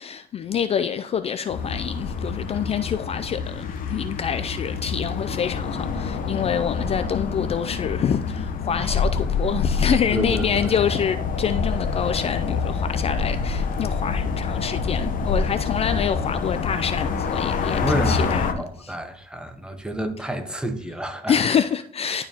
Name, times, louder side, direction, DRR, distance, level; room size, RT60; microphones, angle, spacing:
voice 1, 0.0-18.9 21.3-22.3, left 8 dB, 35° left, 0.4 m, -26 dB
sound 1, 1.5-18.5, left 5 dB, 55° left, 0.9 m, -26 dB
voice 2, 8.8-9.3 10.1-10.8 17.8-21.4, right 1 dB, 5° right, 0.9 m, -30 dB
11.0 x 4.5 x 2.9 m
cardioid pair, 110°, 17 cm